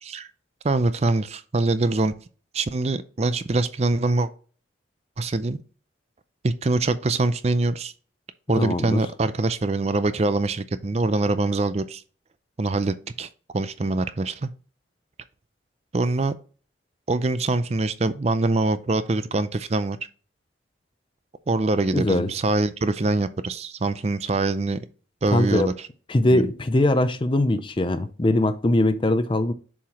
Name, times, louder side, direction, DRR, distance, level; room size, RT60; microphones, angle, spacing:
voice 1, 0.6-2.1 2.5-4.3 5.2-5.6 6.4-7.9 8.5-12.0 12.6-14.5 15.9-16.3 17.1-20.0 21.5-24.9 25.2-25.9 26.2-26.5, right 2 dB, 35° right, 0.4 m, -24 dB
voice 2, 8.6-9.0 21.9-22.3 25.3-25.7 26.1-29.5, left 1 dB, 25° left, 0.5 m, -21 dB
7.1 x 4.8 x 2.9 m
head